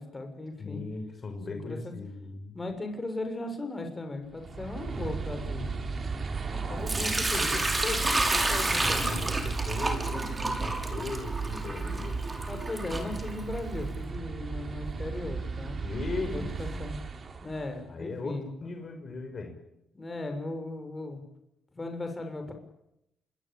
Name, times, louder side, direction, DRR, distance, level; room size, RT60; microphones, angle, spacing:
voice 1, 0.0-0.8 1.5-1.9 2.5-5.6 12.5-15.8 16.3-16.9 17.4-18.5 19.9-21.2 21.7-22.5, left 2 dB, 25° left, 6 dB, 6.8 m, -37 dB
voice 2, 0.6-2.6 6.5-12.3 15.8-16.7 17.9-19.6, left 3 dB, 40° left, 5 dB, 6.0 m, -38 dB
sound 1, 4.3-17.8, right 4 dB, 40° right, 4.2 m, -35 dB
Sink (filling or washing) / Liquid, 6.9-13.8, right 2 dB, 20° right, 6.2 m, -30 dB
26.5 x 21.5 x 9.0 m, 0.83 s
cardioid pair, 90°, 0 cm